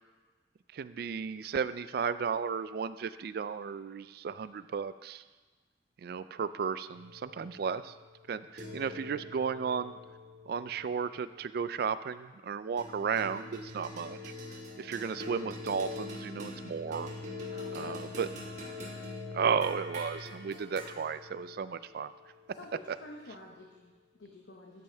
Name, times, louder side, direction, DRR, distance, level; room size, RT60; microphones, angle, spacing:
voice 1, 0.7-5.2 6.0-7.9 8.3-10.0 10.5-14.3 14.8-17.1 17.7-18.3 19.3-22.1 22.5-22.6, right 6 dB, 60° right, 14 dB, 0.3 m, -34 dB
sound 1, 6.9-11.6 12.8-23.3, left 2 dB, 45° right, 1.7 m, -44 dB
voice 2, 17.5-18.8 22.5-24.8, left 2 dB, 85° left, -1 dB, 0.9 m, -50 dB
13.0 x 5.4 x 4.5 m, 1.3 s
head